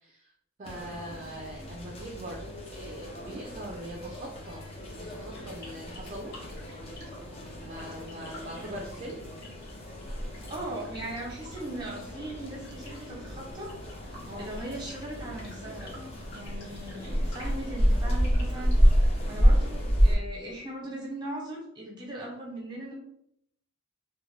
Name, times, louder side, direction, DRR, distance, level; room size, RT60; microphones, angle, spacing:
sound 1, 0.6-20.2, equal, 30° left, 0.5 m, -29 dB
voice 1, 0.6-2.4 2.7-4.6 4.9-6.3 7.6-9.1 14.3-14.5 19.3-19.5, right 1 dB, 35° right, -1 dB, 0.4 m, -41 dB
sound 2, 5.3-19.2, left 2 dB, 55° left, 1.1 m, -52 dB
voice 2, 10.5-13.7 14.4-15.9 16.3-18.8 19.3-22.9, right 1 dB, 20° right, -3 dB, 0.9 m, -39 dB
2.4 x 2.2 x 3.2 m, 0.74 s
head